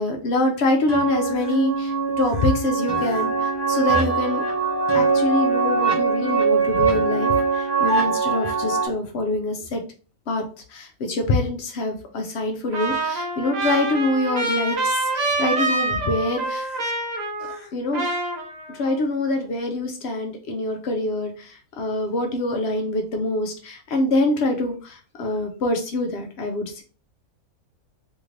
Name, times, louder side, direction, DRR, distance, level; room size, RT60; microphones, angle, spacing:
voice 1, 0.0-4.4 4.9-9.8 10.3-10.4 10.7-16.8 17.4-18.0 18.7-26.8, left 2 dB, 65° left, 3 dB, 0.7 m, -25 dB
sound 1, 0.9-8.9, right 4 dB, 25° left, 0.5 m, -22 dB
Trumpet, 12.7-17.7 17.9-18.9, right 2 dB, 70° right, 0.4 m, -26 dB
2.8 x 2.5 x 3.1 m, 0.39 s
omnidirectional pair, 1.6 m